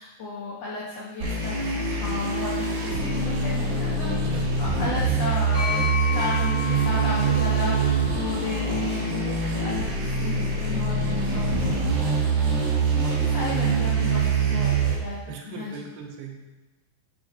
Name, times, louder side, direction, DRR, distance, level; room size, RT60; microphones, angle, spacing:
voice 1, 0.0-12.6 12.9-15.8, left 3 dB, 80° left, -6 dB, 1.4 m, -34 dB
sound 1, 1.2-14.9, right 4 dB, 45° right, 2.4 m, -24 dB
sound 2, 5.5-9.3, left 6 dB, 15° left, 3.0 m, -33 dB
voice 2, 8.6-9.0 13.5-13.9 15.3-16.4, right 7 dB, 80° right, 2 dB, 2.6 m, -39 dB
8.8 x 6.9 x 4.2 m, 1.1 s
omnidirectional pair, 4.7 m